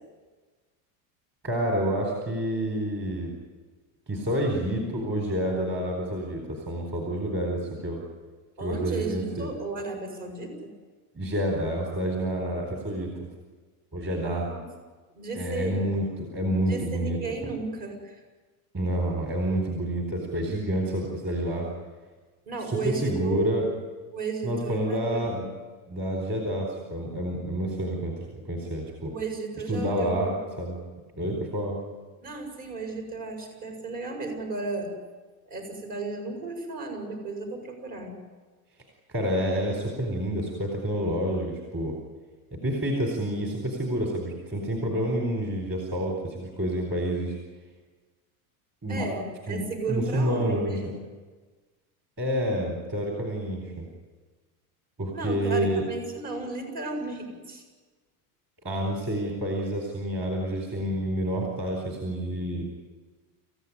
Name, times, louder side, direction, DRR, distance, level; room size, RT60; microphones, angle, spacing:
voice 1, 1.4-3.3 4.1-8.0 8.6-9.5 11.1-13.3 13.9-14.5 15.4-17.2 18.7-21.7 22.7-23.7 24.4-25.5 25.9-29.1 29.7-30.8 31.2-31.8 39.1-42.0 42.5-47.4 48.8-49.1 49.5-50.9 52.2-53.9 55.0-55.8 58.6-62.6, right 1 dB, 25° right, 1 dB, 4.2 m, -28 dB
voice 2, 8.6-10.7 14.4-14.7 15.1-15.8 16.7-18.2 22.5-23.6 24.1-25.2 29.1-30.4 32.2-34.9 35.5-38.2 48.9-50.8 55.1-57.6, right 3 dB, 50° right, 3 dB, 7.7 m, -34 dB
27.5 x 16.0 x 9.9 m, 1.4 s
supercardioid pair, 155°, 44 cm